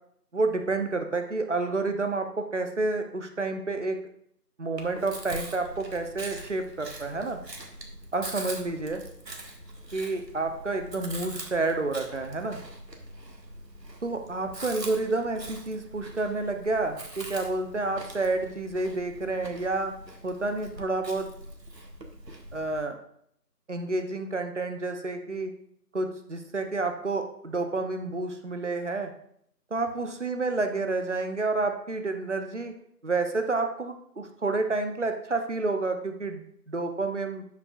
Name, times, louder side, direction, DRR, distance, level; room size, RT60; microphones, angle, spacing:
voice 1, 0.3-4.0 4.6-7.4 8.1-9.0 9.9-12.6 14.0-19.9 20.2-21.3 22.5-22.9 23.7-25.5 25.9-29.1 29.7-32.7 33.0-37.4, right 3 dB, 45° right, 6 dB, 0.8 m, -29 dB
Chewing mastication, 4.8-22.8, right 1 dB, 80° right, 1.7 m, -43 dB
12.5 x 5.9 x 2.4 m, 0.69 s
figure-of-eight pair, 170°, 49 cm